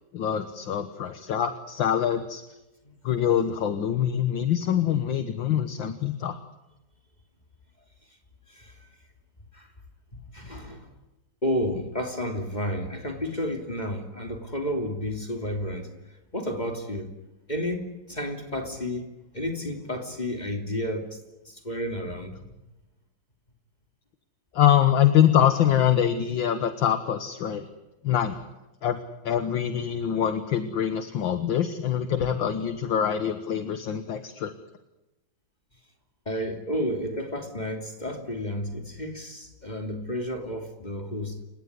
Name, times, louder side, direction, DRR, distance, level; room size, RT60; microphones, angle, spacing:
voice 1, 0.1-2.4 3.0-6.4 24.5-27.7 28.0-28.4 28.8-34.5, left 9 dB, 65° left, 9 dB, 1.9 m, -24 dB
voice 2, 8.5-8.9 9.5-9.7 10.1-10.9 11.4-15.9 16.3-17.1 17.5-19.1 19.3-21.2 21.4-22.4 36.2-41.4, equal, 20° left, 4 dB, 2.9 m, -31 dB
29.0 x 17.0 x 9.6 m, 1.0 s
omnidirectional pair, 2.4 m